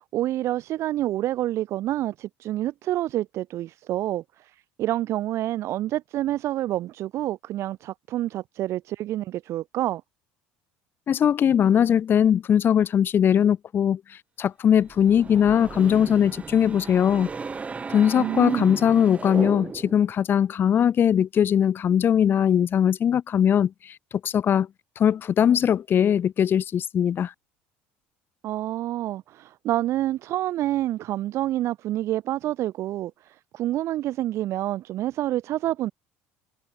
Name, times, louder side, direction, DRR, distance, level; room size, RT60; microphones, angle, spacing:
voice 1, 0.0-10.0 18.1-18.7 28.4-35.9, right 14 dB, 60° right, 7.4 m, -28 dB
voice 2, 11.1-14.0 14.4-17.3 17.9-24.0 24.2-24.7 25.0-27.3, left 9 dB, 40° left, 1.1 m, -20 dB
sound 1, 14.8-20.1, right 4 dB, 25° right, 3.3 m, -35 dB
supercardioid pair, 90°, 5 cm